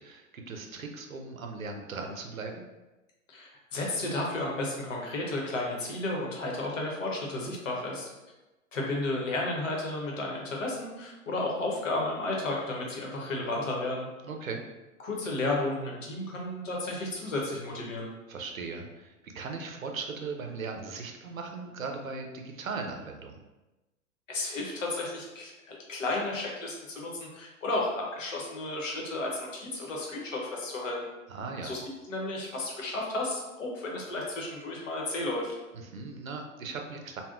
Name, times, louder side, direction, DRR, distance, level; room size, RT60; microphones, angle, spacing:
voice 1, 0.0-2.6 14.2-14.6 18.3-23.4 31.3-31.7 35.7-37.2, right 4 dB, 80° right, 3 dB, 0.6 m, -38 dB
voice 2, 3.3-8.1 8.7-14.1 15.0-18.1 24.3-30.9 31.6-31.8 32.1-35.6, left 2 dB, 70° left, -1 dB, 0.9 m, -33 dB
3.4 x 2.1 x 2.4 m, 1.1 s
figure-of-eight pair, 100°, 40 cm